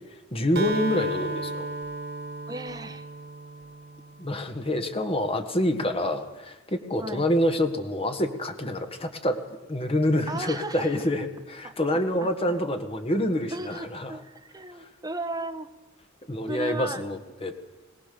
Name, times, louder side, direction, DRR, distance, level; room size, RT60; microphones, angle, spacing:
voice 1, 0.3-1.7 4.2-9.4 9.7-14.1 14.8-14.9 16.2-17.7, left 1 dB, 30° left, 6 dB, 1.7 m, -27 dB
Acoustic guitar, 0.6-4.4, right 3 dB, 55° right, 1.3 m, -34 dB
voice 2, 2.5-3.0 7.0-7.3 10.3-11.1 11.6-12.3 13.5-15.7 16.5-17.0 17.5-17.7, right 2 dB, 20° right, 6 dB, 1.4 m, -36 dB
22.0 x 19.0 x 6.9 m, 1.1 s
head